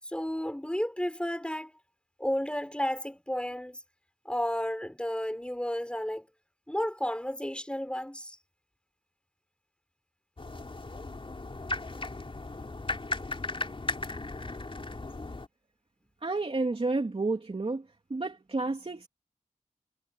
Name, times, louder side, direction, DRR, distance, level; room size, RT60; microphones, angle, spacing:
voice 1, 0.0-1.7 2.2-3.8 4.2-6.3 6.7-8.4, equal, 5° left, 6.4 m, -32 dB
sound 1, 10.4-15.5, left 2 dB, 40° left, 4.2 m, -36 dB
voice 2, 16.2-17.8 18.1-19.1, right 3 dB, 45° right, 3.3 m, -30 dB
wide cardioid pair, 95°, 14 cm